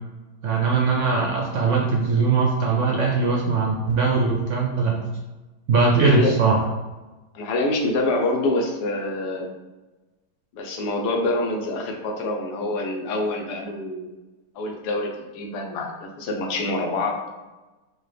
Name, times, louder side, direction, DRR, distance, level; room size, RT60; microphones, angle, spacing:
voice 1, 0.4-5.0 5.7-6.6, right 4 dB, 70° right, 0 dB, 0.7 m, -20 dB
voice 2, 6.0-6.4 7.3-9.5 10.5-14.1 14.5-17.2, left 2 dB, 85° left, 2 dB, 1.2 m, -26 dB
4.7 x 2.2 x 3.2 m, 1.1 s
omnidirectional pair, 1.7 m